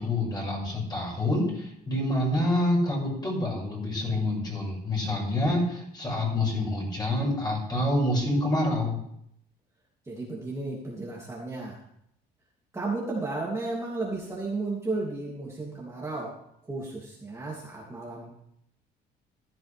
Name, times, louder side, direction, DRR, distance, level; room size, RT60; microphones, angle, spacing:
voice 1, 0.0-9.0, left 1 dB, 25° left, -3 dB, 6.5 m, -27 dB
voice 2, 10.0-11.8 12.7-16.3 16.6-18.3, right 3 dB, 15° right, -5 dB, 2.9 m, -33 dB
15.5 x 12.0 x 3.5 m, 0.74 s
cardioid pair, 110°, 17 cm